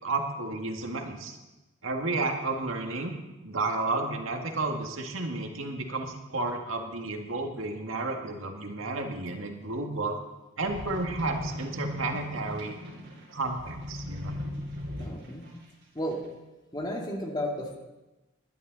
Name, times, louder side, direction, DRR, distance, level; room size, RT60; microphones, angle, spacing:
voice 1, 0.0-1.4 1.8-3.1 3.4-10.2 10.6-12.7 13.3-14.3, right 3 dB, 80° right, 3 dB, 1.9 m, -32 dB
sound 1, 10.6-15.5 16.1-16.2, left 1 dB, 60° right, 4.6 m, -38 dB
voice 2, 15.0-15.5 15.9-16.2 16.7-17.8, equal, 20° left, 0 dB, 2.1 m, -33 dB
19.0 x 11.5 x 4.0 m, 1.1 s
head